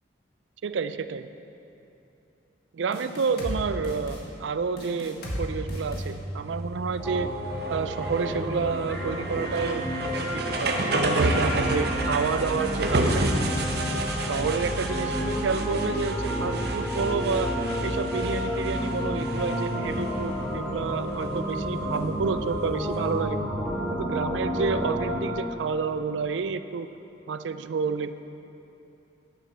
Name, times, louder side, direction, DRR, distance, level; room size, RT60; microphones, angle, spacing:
voice 1, 0.6-1.2 2.7-7.3 7.7-13.2 14.3-17.5 17.8-23.4 23.9-26.9 27.3-28.2, right 5 dB, 80° right, 12 dB, 0.4 m, -29 dB
sound 1, 2.9-3.6 3.8-4.2 4.8-5.4 5.7-6.0, equal, 60° left, 1.7 m, -34 dB
sound 2, 5.2-23.2, right 1 dB, 60° right, 0.9 m, -31 dB
sound 3, 7.0-25.3, equal, 5° left, 1.4 m, -30 dB
10.5 x 6.8 x 5.9 m, 2.9 s
head